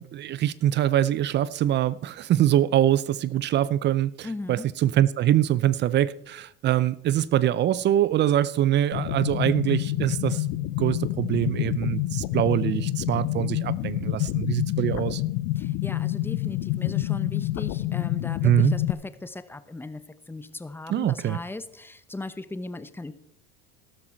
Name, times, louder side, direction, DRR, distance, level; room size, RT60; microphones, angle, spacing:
voice 1, 0.0-10.4 10.8-15.2 18.4-18.7 20.9-21.4, right 12 dB, 35° right, 0.5 m, -24 dB
voice 2, 4.2-4.7 15.5-23.1, left 2 dB, 5° left, 0.8 m, -37 dB
sound 1, 8.9-18.9, left 16 dB, 60° left, 0.9 m, -28 dB
13.5 x 12.5 x 4.4 m
supercardioid pair, 105°, 32 cm